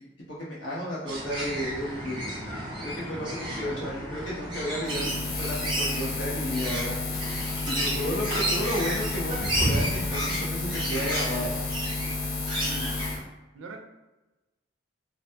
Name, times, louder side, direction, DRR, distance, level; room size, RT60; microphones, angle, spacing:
voice 1, 0.4-2.2 2.8-5.0 5.4-6.9 7.8-11.6, equal, 75° left, -6 dB, 1.0 m, -32 dB
sound 1, 1.1-13.2, right 1 dB, 25° right, 0.5 m, -32 dB
voice 2, 3.2-3.9 7.9-8.8 12.6-12.9 13.5-13.8, right 1 dB, 80° right, 4 dB, 0.4 m, -40 dB
Buzz, 4.8-13.2, left 3 dB, 55° left, 0.5 m, -32 dB
2.7 x 2.3 x 2.2 m, 1.1 s
head